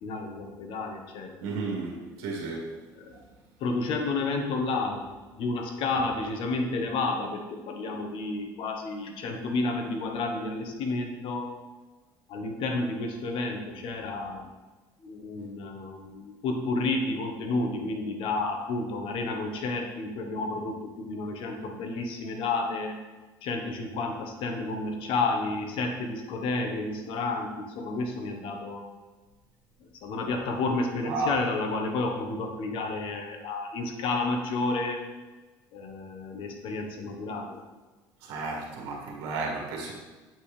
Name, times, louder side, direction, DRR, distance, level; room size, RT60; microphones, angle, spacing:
voice 1, 0.0-1.4 3.0-3.1 3.6-5.0 5.3-11.5 12.3-14.5 15.0-23.0 23.4-28.8 30.0-35.0 35.7-37.6, left 3 dB, 70° left, 3 dB, 1.1 m, -31 dB
voice 2, 1.4-2.7 3.1-3.2 31.0-31.4 38.2-40.0, right 3 dB, 80° right, -2 dB, 1.6 m, -33 dB
7.9 x 4.4 x 3.3 m, 1.3 s
supercardioid pair, 95°, 9 cm